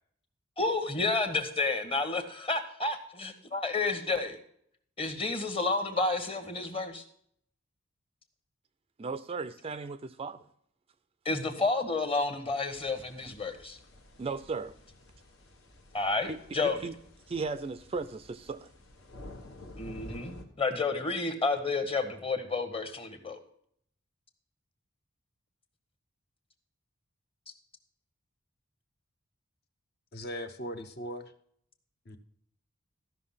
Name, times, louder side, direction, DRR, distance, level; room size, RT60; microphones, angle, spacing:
voice 1, 0.6-4.4 5.0-7.0 11.2-13.8 15.9-16.9 19.8-23.4, left 3 dB, 25° left, 1.2 m, -30 dB
voice 2, 9.0-10.4 14.2-14.7 16.3-16.9 17.3-18.7, right 4 dB, 30° right, 0.4 m, -36 dB
sound 1, 12.7-20.4, left 1 dB, 80° left, 1.6 m, -51 dB
voice 3, 30.1-31.3 32.1-32.2, equal, 50° left, 0.8 m, -39 dB
13.5 x 5.8 x 5.6 m
head